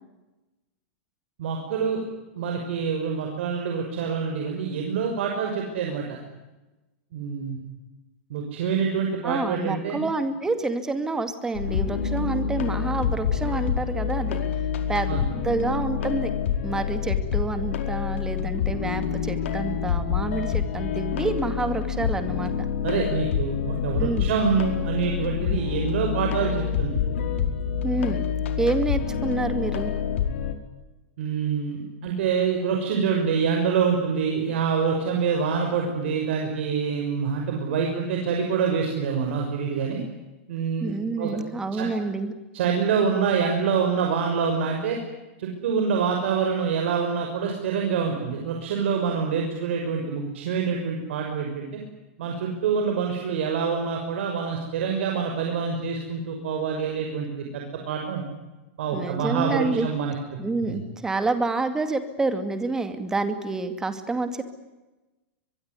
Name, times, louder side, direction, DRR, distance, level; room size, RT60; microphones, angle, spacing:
voice 1, 1.4-2.0 2.4-6.2 7.1-7.6 8.3-10.0 15.1-15.2 22.8-27.0 31.2-40.0 40.5-41.4 41.7-41.9 42.5-45.0 45.4-51.8 52.2-58.2 58.8-60.1 60.6-60.8, right 6 dB, 70° right, 2 dB, 5.9 m, -26 dB
voice 2, 9.2-14.4 14.9-16.3 16.6-22.5 24.0-24.4 27.8-28.2 28.6-29.9 40.8-42.3 58.9-59.9 60.4-64.4, right 3 dB, 10° right, 9 dB, 2.4 m, -28 dB
sound 1, 11.5-30.5, left 8 dB, 80° left, 4.8 m, -27 dB
23.5 x 23.0 x 9.8 m, 1.1 s
supercardioid pair, 160°, 7 cm